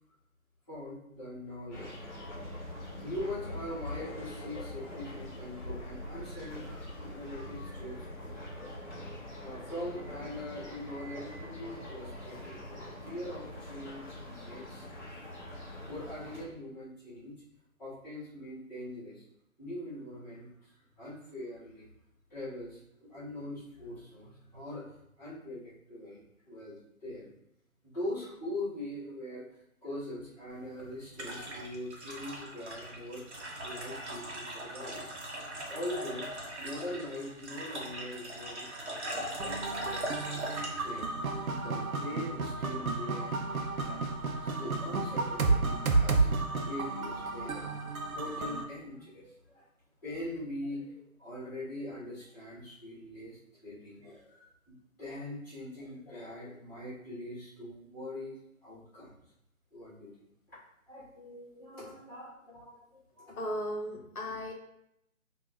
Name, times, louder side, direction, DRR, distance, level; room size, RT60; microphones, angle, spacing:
voice 1, 0.7-1.9 3.0-6.6 6.9-8.8 9.4-12.7 13.0-15.1 15.9-17.3 17.8-19.2 19.6-21.9 22.3-27.3 27.8-29.5 29.8-33.2 33.6-35.1 35.6-36.3 36.6-40.4 40.8-41.1 41.5-44.0 44.3-46.3 46.6-47.7 48.1-49.6 50.0-58.4 58.6-59.2 59.7-60.1 60.5-60.6 60.9-63.4, left 1 dB, 15° left, -11 dB, 1.4 m, -42 dB
sound 1, 1.7-16.5, left 1 dB, 30° left, 1.1 m, -43 dB
sound 2, 30.5-42.2, right 1 dB, 55° right, 1.0 m, -41 dB
sound 3, 39.4-48.6, right 3 dB, 80° right, 0.6 m, -31 dB
voice 2, 63.4-64.5, equal, 85° left, 1 dB, 1.0 m, -36 dB
4.4 x 2.6 x 2.4 m, 0.78 s
figure-of-eight pair, 170°, 42 cm